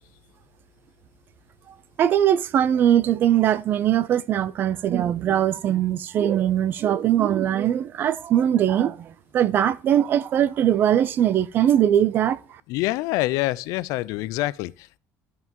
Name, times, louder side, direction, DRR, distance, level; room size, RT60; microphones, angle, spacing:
voice 1, 2.0-12.4, right 10 dB, 35° right, 0.5 m, -21 dB
voice 2, 12.7-15.0, left 18 dB, 80° left, 0.5 m, -26 dB
13.0 x 5.6 x 2.9 m
cardioid pair, 180°, 6 cm